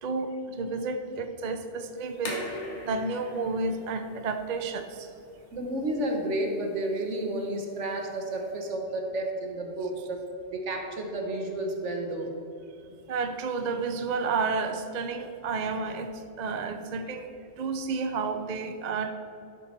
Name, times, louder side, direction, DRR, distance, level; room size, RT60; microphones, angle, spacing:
voice 1, 0.0-5.1 13.1-16.1 16.4-19.1, right 4 dB, 45° right, 7 dB, 0.6 m, -31 dB
sound 1, 2.0-8.6, left 1 dB, 70° left, 2.1 m, -43 dB
voice 2, 5.5-10.2 10.5-12.3, right 1 dB, 80° right, 2 dB, 1.5 m, -31 dB
12.0 x 6.9 x 4.5 m, 2.8 s
omnidirectional pair, 1.2 m